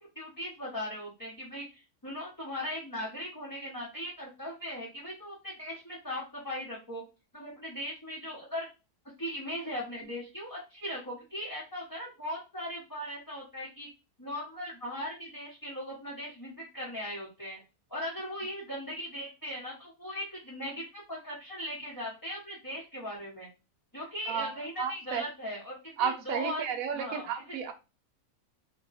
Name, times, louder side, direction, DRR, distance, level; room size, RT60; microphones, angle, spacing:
voice 1, 0.1-7.0 7.3-8.7 9.2-13.9 14.2-17.6 17.9-23.5 23.9-26.6 26.9-27.3, equal, 15° left, 0.8 m, -39 dB
voice 2, 24.8-25.2 26.0-27.7, right 7 dB, 75° right, 0.9 m, -32 dB
2.8 x 2.3 x 4.0 m
omnidirectional pair, 1.6 m